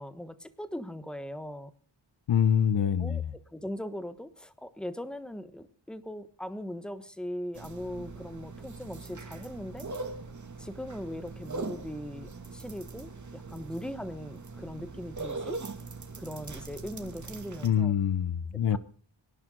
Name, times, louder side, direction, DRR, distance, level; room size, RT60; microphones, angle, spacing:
voice 1, 0.0-1.7 3.0-9.9 10.6-15.6 16.2-17.9 18.7-18.8, left 1 dB, ahead, 1.2 m, -40 dB
voice 2, 2.3-3.2 17.6-18.8, left 8 dB, 65° left, 0.9 m, -25 dB
sound 1, 7.5-17.7, right 3 dB, 40° right, 2.4 m, -41 dB
25.0 x 11.0 x 3.9 m
wide cardioid pair, 95°, 45 cm